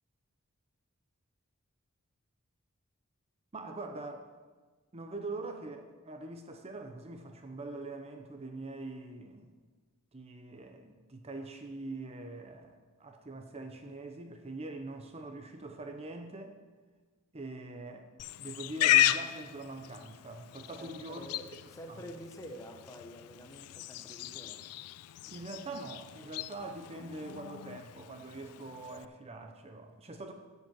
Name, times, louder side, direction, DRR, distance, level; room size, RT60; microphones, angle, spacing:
voice 1, 3.5-4.3 4.9-9.5 10.1-16.6 17.3-18.1 18.4-21.3 21.9-22.0 25.3-30.3, right 2 dB, 30° right, 5 dB, 0.7 m, -43 dB
Livestock farm animals working animals, 18.2-29.1, left 13 dB, 90° left, 0.3 m, -34 dB
voice 2, 20.8-21.4 21.7-24.6, equal, 15° left, 4 dB, 0.9 m, -48 dB
10.0 x 5.5 x 7.5 m, 1.4 s
head